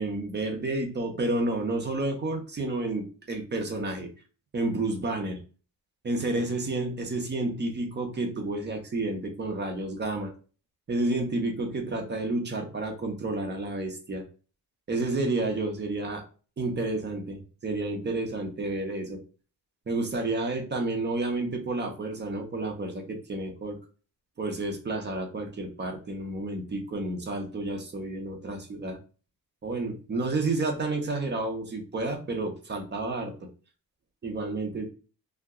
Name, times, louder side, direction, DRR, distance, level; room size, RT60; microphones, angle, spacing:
voice 1, 0.0-4.1 4.5-5.4 6.0-10.3 10.9-14.2 14.9-16.2 16.6-19.2 19.9-23.8 24.4-29.0 29.6-33.5 34.2-34.8, right 2 dB, 30° right, 3 dB, 0.6 m, -30 dB
2.7 x 2.1 x 3.5 m, 0.36 s
wide cardioid pair, 145°, 37 cm